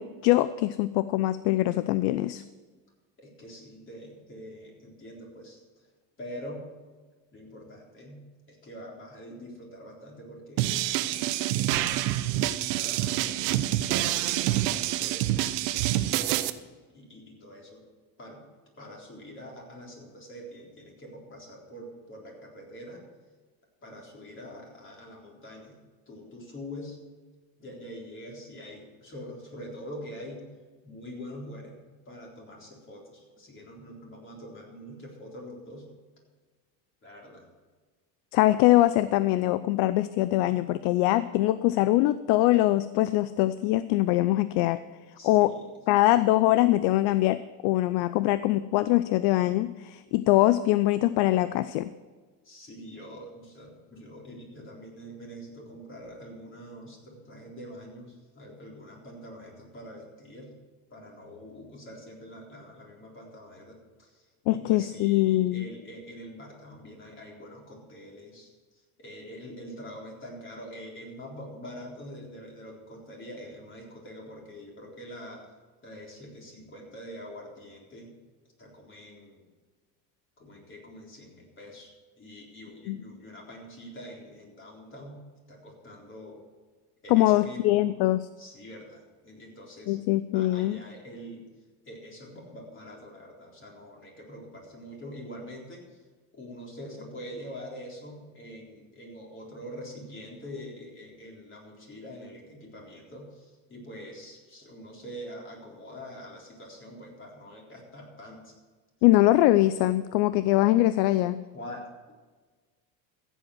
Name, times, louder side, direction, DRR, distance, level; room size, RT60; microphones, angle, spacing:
voice 1, 0.0-2.4 38.3-44.8 45.2-45.5 45.9-51.9 64.5-65.6 82.9-83.0 87.1-88.3 89.9-90.8 109.0-111.4, left 16 dB, 55° left, 14 dB, 0.6 m, -23 dB
voice 2, 3.2-5.9 6.2-6.7 7.3-12.0 12.6-16.4 16.9-17.8 18.2-18.4 18.8-23.0 23.8-25.8 26.1-27.0 27.6-30.5 30.8-31.8 32.1-35.9 37.0-37.5 45.2-45.7 52.4-60.5 60.9-75.5 75.8-78.2 78.6-79.5 80.4-81.9 82.2-86.4 87.0-87.9 88.4-90.0 90.3-91.5 91.8-96.0 96.3-108.5 111.5-112.1, equal, 25° left, -1 dB, 3.9 m, -45 dB
sound 1, 10.6-16.5, right 14 dB, 85° right, 0.9 m, -27 dB
14.5 x 8.0 x 6.4 m, 1.3 s
supercardioid pair, 130°, 47 cm